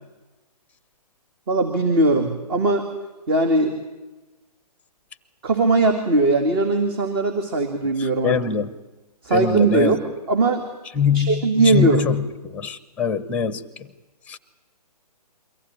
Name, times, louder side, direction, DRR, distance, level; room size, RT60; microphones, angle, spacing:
voice 1, 1.5-2.9 3.3-3.8 5.4-8.4 9.2-10.6 11.1-12.1, right 2 dB, 35° right, 6 dB, 2.3 m, -20 dB
voice 2, 8.2-8.7 9.3-10.0 11.0-12.2 12.5-13.6 14.3-14.4, left 6 dB, 5° left, 16 dB, 0.9 m, -23 dB
23.5 x 15.5 x 9.7 m, 1.1 s
figure-of-eight pair, 140°, 21 cm